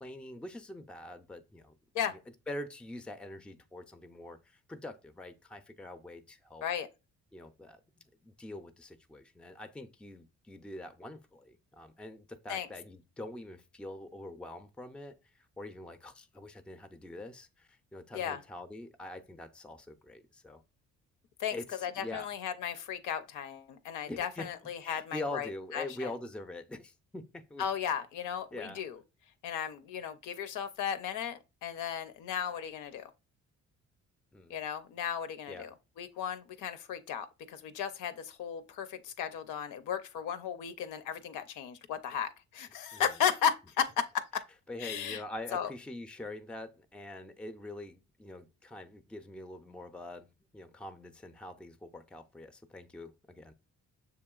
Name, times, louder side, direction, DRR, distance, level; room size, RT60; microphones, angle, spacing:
voice 1, 0.0-1.7 2.1-2.2 2.5-6.6 7.3-20.6 21.5-22.3 24.1-24.5 24.8-27.6 28.5-28.8 34.3-34.6 35.5-35.7 42.9-43.0 44.7-50.3 50.5-53.5, left 1 dB, 5° left, 0.3 m, -44 dB
voice 2, 21.4-26.1 27.6-29.0 29.4-33.1 34.5-44.4 44.8-45.2 45.5-45.7, left 8 dB, 85° left, 0.5 m, -35 dB
6.7 x 2.8 x 2.3 m
cardioid pair, 90°, 30 cm